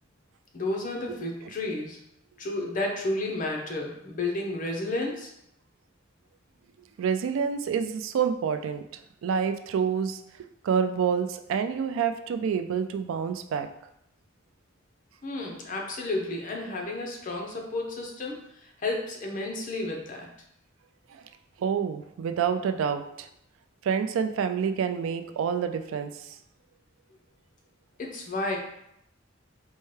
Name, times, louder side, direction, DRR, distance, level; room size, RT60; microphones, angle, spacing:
voice 1, 0.5-2.0 2.4-5.3 15.2-18.4 18.6-20.3 28.0-28.6, left 2 dB, 45° left, 0 dB, 0.7 m, -31 dB
voice 2, 7.0-8.8 9.2-10.2 10.6-13.7 21.6-23.3 23.8-26.1, right 7 dB, 85° right, 8 dB, 0.3 m, -27 dB
4.4 x 2.2 x 3.2 m, 0.76 s
head